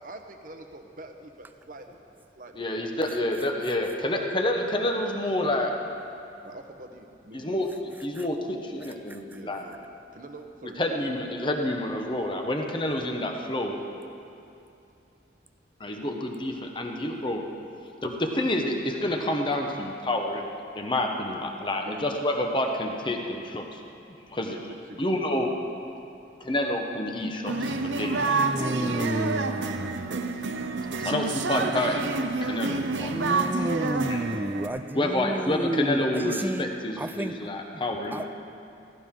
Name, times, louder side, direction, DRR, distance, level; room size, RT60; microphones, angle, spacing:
voice 1, 0.0-1.8 2.4-2.6 4.1-4.3 6.4-7.6 9.3-9.8 10.1-10.8 20.7-20.9 21.5-22.1 24.4-25.1 28.7-29.2 30.1-30.5 31.0-31.1 34.7-35.5, right 2 dB, 45° right, 5 dB, 1.0 m, -45 dB
voice 2, 2.6-5.7 7.3-9.6 10.8-13.8 15.8-17.4 18.0-23.8 24.3-24.6 25.0-25.5 26.4-29.1 31.0-32.2 32.4-33.1 33.8-34.2 34.9-38.2, left 1 dB, 25° left, 2 dB, 1.1 m, -28 dB
sound 1, 27.5-34.7, right 3 dB, 85° right, 0.8 m, -28 dB
voice 3, 28.2-29.9 33.1-36.6 37.0-37.3 38.1-38.2, right 1 dB, 10° right, 10 dB, 0.3 m, -31 dB
16.0 x 16.0 x 3.8 m, 2.6 s
head